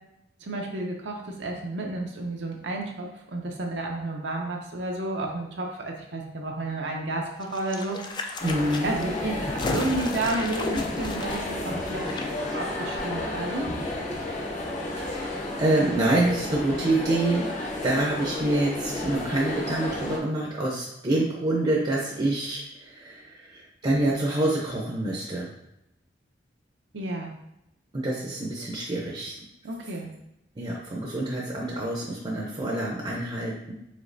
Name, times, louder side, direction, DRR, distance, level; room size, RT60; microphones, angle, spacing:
voice 1, 0.4-8.0 8.8-12.2 12.5-13.7 26.9-27.3 29.6-30.1, right 2 dB, 75° right, 1 dB, 0.7 m, -31 dB
sound 1, 7.4-12.2 12.5-12.6, left 3 dB, 25° left, 0.4 m, -34 dB
sound 2, 8.4-20.2, left 1 dB, 40° left, 0.8 m, -32 dB
voice 2, 8.4-8.9 14.9-17.5 17.8-25.5 27.9-29.3 30.6-33.7, right 1 dB, 30° right, -3 dB, 0.6 m, -27 dB
5.1 x 3.7 x 2.6 m, 0.85 s
head